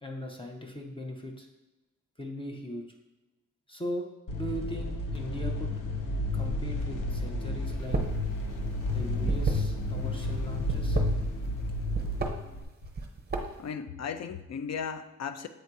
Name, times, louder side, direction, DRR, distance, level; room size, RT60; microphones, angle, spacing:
voice 1, 0.0-1.5 2.2-2.8 3.7-4.1 4.3-5.7 6.3-8.0 8.9-11.0, equal, 15° left, 1 dB, 0.7 m, -39 dB
sound 1, 4.3-12.6, left 1 dB, 85° left, 0.8 m, -31 dB
sound 2, 7.8-8.2 8.5-10.1 10.6-11.6 11.9-12.3 12.8-13.7, right 3 dB, 30° right, 0.7 m, -31 dB
voice 2, 13.6-15.5, left 6 dB, 60° left, 10 dB, 0.4 m, -36 dB
7.7 x 2.7 x 4.6 m, 1.1 s
wide cardioid pair, 125°, 31 cm